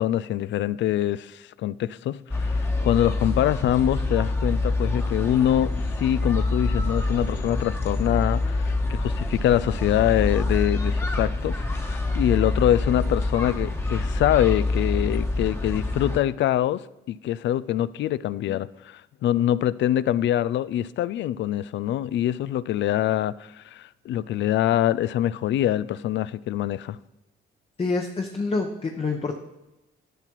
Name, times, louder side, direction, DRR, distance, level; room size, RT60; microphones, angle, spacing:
voice 1, 0.0-16.8 17.1-27.0, left 12 dB, 70° left, 0.4 m, -24 dB
sound 1, 2.3-16.2, left 2 dB, 10° left, 1.2 m, -26 dB
voice 2, 27.8-29.4, left 3 dB, 30° left, 0.9 m, -27 dB
11.5 x 5.9 x 4.6 m
cardioid pair, 90°, 20 cm